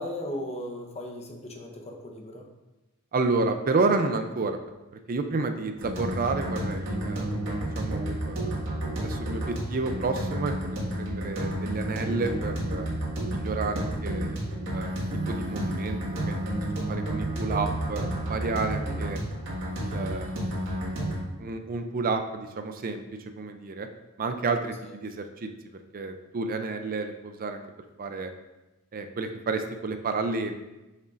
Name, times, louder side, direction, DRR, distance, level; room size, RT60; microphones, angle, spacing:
voice 1, 0.0-2.4 18.7-19.0, left 1 dB, 30° left, 2 dB, 0.8 m, -36 dB
voice 2, 3.1-4.6 4.9-7.3 7.7-8.7 8.9-12.9 13.3-16.4 16.9-19.2 19.8-20.3 21.4-23.0 23.4-23.9 24.2-25.5 25.9-27.6 28.0-28.3 28.9-30.5, right 3 dB, 40° right, 7 dB, 0.4 m, -30 dB
sound 1, 5.8-21.2, right 1 dB, 60° right, 1.6 m, -31 dB
6.8 x 6.5 x 2.5 m, 1.0 s
head